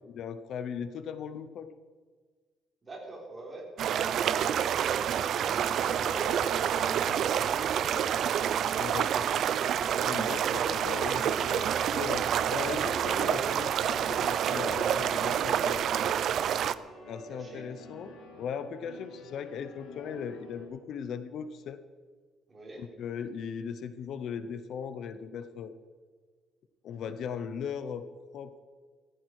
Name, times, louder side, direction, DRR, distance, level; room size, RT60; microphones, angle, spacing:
voice 1, 0.0-1.7 6.9-7.2 8.8-9.5 10.0-15.9 17.1-21.8 22.8-25.7 26.8-28.1 28.3-28.6, left 7 dB, 55° left, 12 dB, 0.8 m, -38 dB
voice 2, 2.8-3.7 4.6-8.1 8.6-9.4 17.0-17.6 22.5-22.8, right 2 dB, 20° right, -2 dB, 4.2 m, -45 dB
sound 1, 3.8-16.7, right 9 dB, 55° right, 0.5 m, -28 dB
sound 2, 5.8-8.9 9.8-20.7, left 1 dB, 85° left, 4.3 m, -49 dB
15.0 x 14.5 x 4.8 m, 1.5 s
cardioid pair, 155°, 0 cm